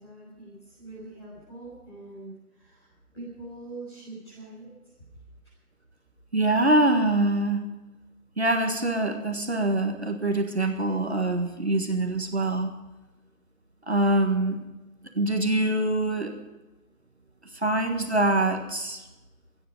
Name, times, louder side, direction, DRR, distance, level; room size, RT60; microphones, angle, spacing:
voice 1, 0.0-4.9, right 2 dB, 20° left, -10 dB, 6.6 m, -44 dB
voice 2, 6.3-7.6 8.4-12.7 13.9-14.6 15.1-16.3 17.5-19.0, right 2 dB, 45° right, 4 dB, 1.6 m, -24 dB
27.5 x 10.0 x 5.3 m, 1.1 s
figure-of-eight pair, 180°, 45 cm